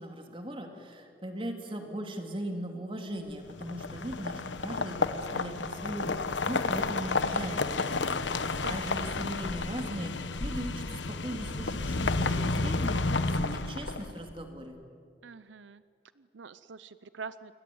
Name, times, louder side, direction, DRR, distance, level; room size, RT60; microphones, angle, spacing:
voice 1, 0.0-8.2 8.7-14.8, right 1 dB, 30° right, 4 dB, 3.1 m, -39 dB
sound 1, 3.5-14.3, left 3 dB, 85° left, 1.2 m, -31 dB
voice 2, 15.2-15.8 16.2-17.6, right 5 dB, 85° right, 14 dB, 0.7 m, -44 dB
28.5 x 21.5 x 9.5 m, 2.3 s
head